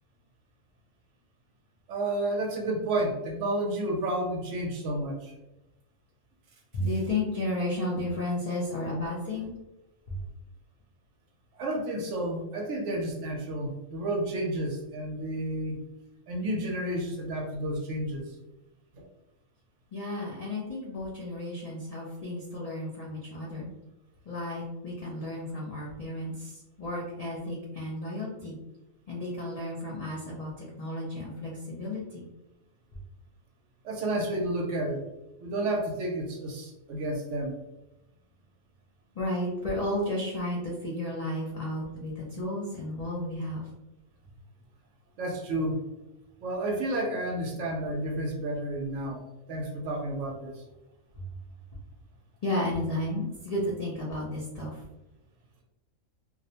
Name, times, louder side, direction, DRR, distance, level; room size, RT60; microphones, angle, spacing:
voice 1, 1.9-5.3 11.6-15.8 16.3-18.3 18.9-19.1 33.8-35.0 35.4-37.6 45.2-45.8 46.4-50.6, right 1 dB, 70° right, 1 dB, 0.9 m, -31 dB
voice 2, 6.7-9.5 19.9-23.7 24.3-28.6 29.1-32.2 39.2-43.6 52.4-54.8, left 1 dB, 60° left, -5 dB, 0.4 m, -33 dB
2.5 x 2.0 x 2.7 m, 0.98 s
omnidirectional pair, 1.4 m